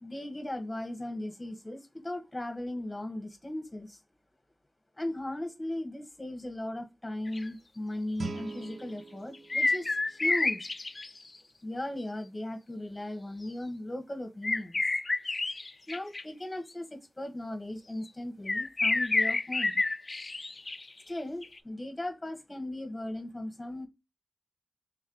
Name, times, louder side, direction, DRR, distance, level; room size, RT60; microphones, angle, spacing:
voice 1, 0.0-4.0 5.0-10.7 11.6-14.8 15.9-19.8 21.1-23.9, left 1 dB, 20° left, 4 dB, 1.1 m, -37 dB
sound 1, 7.3-7.5 8.5-8.7 9.3-11.2 14.4-16.2 18.5-21.1 21.4-21.6, left 3 dB, 40° left, 0.3 m, -29 dB
Guitar, 8.2-10.9, right 4 dB, 75° right, 0.5 m, -43 dB
3.6 x 3.2 x 3.8 m, 0.24 s
wide cardioid pair, 85°, 0 cm